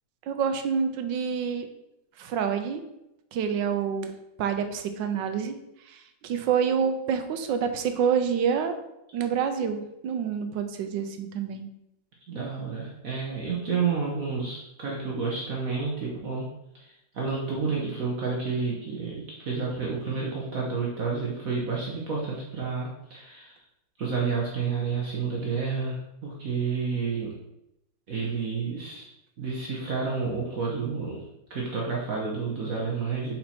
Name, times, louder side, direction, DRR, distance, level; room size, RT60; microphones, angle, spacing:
voice 1, 0.3-1.7 2.2-2.8 3.3-4.1 4.4-5.6 5.9-8.8 9.1-11.7, right 7 dB, 80° right, 7 dB, 1.3 m, -27 dB
voice 2, 12.3-16.4 16.8-23.6 24.0-27.3 28.1-29.1 29.4-31.2 31.5-33.4, right 5 dB, 50° right, -3 dB, 1.3 m, -30 dB
6.0 x 4.3 x 4.3 m, 0.85 s
omnidirectional pair, 2.0 m